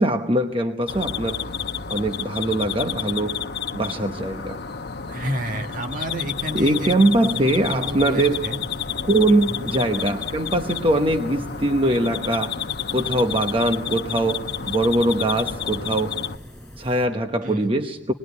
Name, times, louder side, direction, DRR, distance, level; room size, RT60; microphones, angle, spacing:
voice 1, 0.0-1.4 1.9-3.4 3.7-4.6 6.5-8.5 9.0-12.6 12.9-16.2 16.8-18.1, right 1 dB, 30° right, 5 dB, 1.0 m, -22 dB
sound 1, 0.9-16.4, left 7 dB, 65° left, 0.9 m, -30 dB
voice 2, 5.1-6.9 7.2-8.6 9.5-9.8 17.4-17.8, equal, 50° right, 4 dB, 1.9 m, -31 dB
sound 2, 6.3-17.1, equal, 5° left, 4.9 m, -43 dB
26.5 x 21.0 x 9.6 m, 1.1 s
head